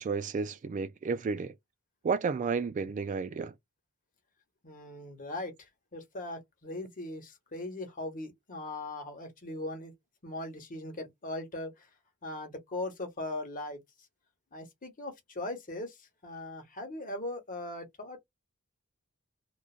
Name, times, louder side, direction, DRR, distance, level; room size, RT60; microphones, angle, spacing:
voice 1, 0.0-1.5 2.0-3.5, right 5 dB, 35° right, 0.3 m, -32 dB
voice 2, 4.6-9.9 10.2-11.9 12.2-13.8 14.5-18.2, left 2 dB, 40° left, 1.1 m, -39 dB
3.1 x 2.3 x 2.4 m
head